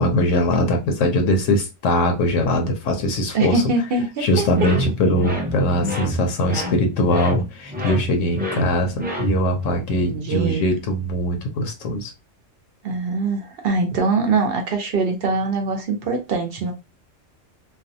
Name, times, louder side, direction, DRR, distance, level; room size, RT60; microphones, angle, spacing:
voice 1, 0.0-3.6 4.2-12.1, left 1 dB, 80° left, 0.9 m, -21 dB
voice 2, 3.3-4.4 10.1-10.6 12.8-16.7, right 3 dB, 60° right, 0.6 m, -23 dB
sound 1, 4.5-9.7, left 1 dB, 15° right, 0.4 m, -28 dB
2.6 x 2.0 x 2.6 m
omnidirectional pair, 1.3 m